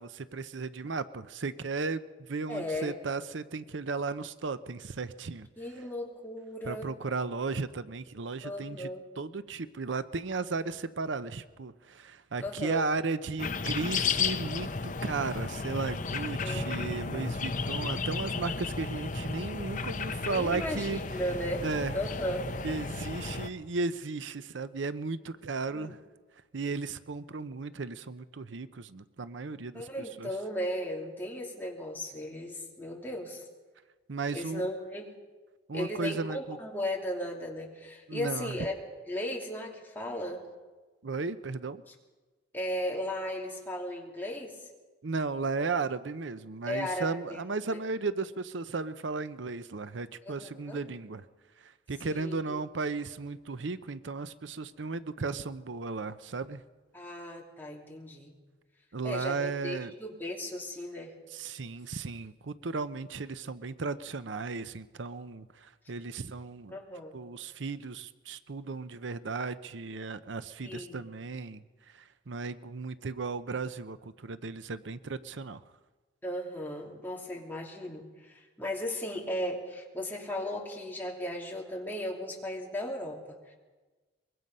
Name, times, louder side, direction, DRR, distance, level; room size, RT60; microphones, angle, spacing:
voice 1, 0.0-5.5 6.6-8.9 9.2-21.0 21.6-21.9 22.6-26.0 26.5-29.9 30.2-30.3 34.1-34.6 35.7-36.6 38.1-38.5 41.0-41.8 45.0-51.3 51.6-56.6 58.9-59.9 61.3-66.8 67.1-75.6, right 4 dB, 80° right, 13 dB, 0.7 m, -35 dB
voice 2, 2.5-3.0 5.6-6.9 8.4-9.0 12.4-12.9 16.4-17.4 20.3-21.6 21.9-22.8 25.7-25.9 29.7-33.5 34.3-35.0 35.7-38.7 39.1-40.4 42.5-44.6 46.7-47.4 47.7-47.8 50.2-50.8 52.0-52.6 56.9-58.3 59.0-61.1 66.7-67.2 70.6-71.0 76.2-83.5, left 1 dB, 10° left, -2 dB, 2.9 m, -36 dB
sound 1, 13.4-23.5, left 4 dB, 45° left, 0.8 m, -34 dB
23.5 x 22.0 x 5.5 m, 1.3 s
head